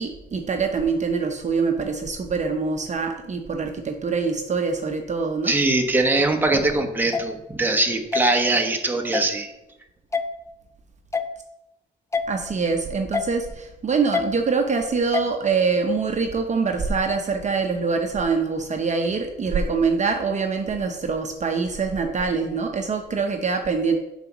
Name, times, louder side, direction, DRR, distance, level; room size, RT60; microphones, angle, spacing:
voice 1, 0.0-5.5 12.3-24.0, right 4 dB, 35° right, 4 dB, 0.8 m, -24 dB
voice 2, 5.5-9.5, right 2 dB, 10° right, 3 dB, 0.9 m, -22 dB
sound 1, 7.1-7.2 8.1-8.2 9.1-9.3 10.1-10.2 11.1-11.3 12.1-12.3 13.1-13.3 14.1-14.3 15.1-15.3, left 5 dB, 15° left, 0.4 m, -24 dB
5.5 x 4.0 x 5.9 m, 0.93 s
cardioid pair, 90°, 20 cm